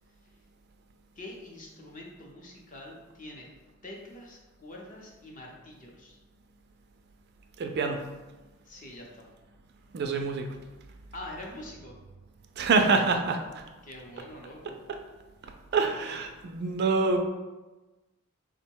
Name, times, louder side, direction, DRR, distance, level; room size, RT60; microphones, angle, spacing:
voice 1, 1.2-3.5 3.8-6.2 8.7-9.2 11.1-11.9 13.8-14.8 15.8-16.2, left 1 dB, 35° left, -1 dB, 0.6 m, -45 dB
voice 2, 7.6-8.0 9.9-10.5 12.6-13.6 14.9-15.0 15.7-17.2, right 4 dB, 50° right, 5 dB, 0.3 m, -26 dB
3.7 x 2.1 x 4.4 m, 1.1 s
head